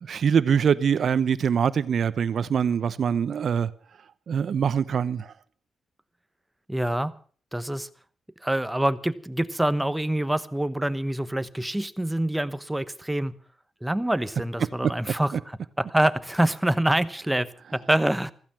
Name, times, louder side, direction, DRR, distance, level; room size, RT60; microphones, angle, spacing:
voice 1, 0.0-3.7 4.3-5.3 14.8-14.9 15.3-15.4, right 7 dB, 60° right, 0.9 m, -23 dB
voice 2, 6.7-7.1 7.5-7.9 8.4-13.3 13.8-18.3, right 1 dB, 5° right, 1.0 m, -26 dB
15.5 x 15.0 x 5.9 m
cardioid pair, 105°, 0 cm